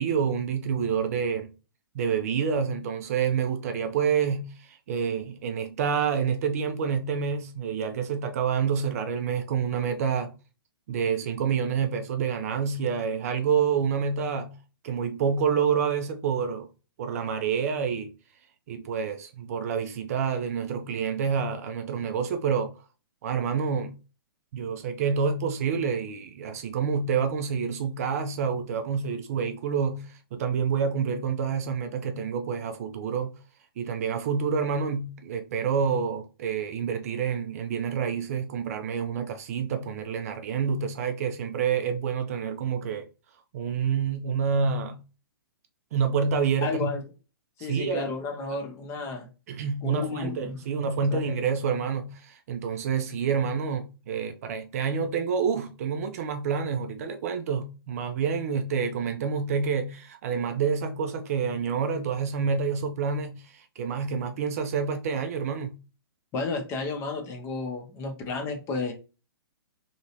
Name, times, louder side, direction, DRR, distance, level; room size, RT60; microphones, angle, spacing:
voice 1, 0.0-1.5 1.9-10.3 10.9-14.5 14.8-16.7 17.0-18.1 18.7-22.8 23.2-24.0 24.5-33.4 33.8-43.1 43.5-45.0 45.9-46.9 47.7-48.1 49.5-65.8, right 6 dB, 40° right, 0.4 m, -28 dB
voice 2, 46.6-47.0 47.6-49.3 49.8-50.6 51.1-51.2 66.3-68.9, left 3 dB, 20° left, 0.6 m, -32 dB
2.8 x 2.8 x 2.8 m
figure-of-eight pair, 115°, 13 cm